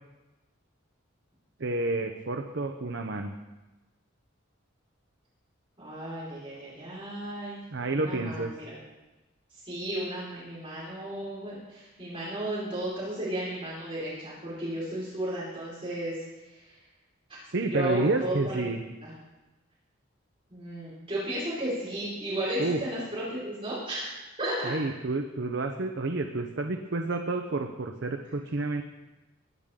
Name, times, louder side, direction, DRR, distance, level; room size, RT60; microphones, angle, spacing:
voice 1, 1.6-3.3 7.7-8.5 17.5-18.8 22.6-22.8 24.6-28.8, right 2 dB, 60° right, 4 dB, 0.8 m, -29 dB
voice 2, 5.8-7.6 7.9-8.7 9.6-16.8 17.3-17.4 17.6-18.6 19.0-19.1 20.5-24.1 24.4-24.7, right 1 dB, 30° right, -9 dB, 4.6 m, -34 dB
20.5 x 10.5 x 3.8 m, 1.1 s
head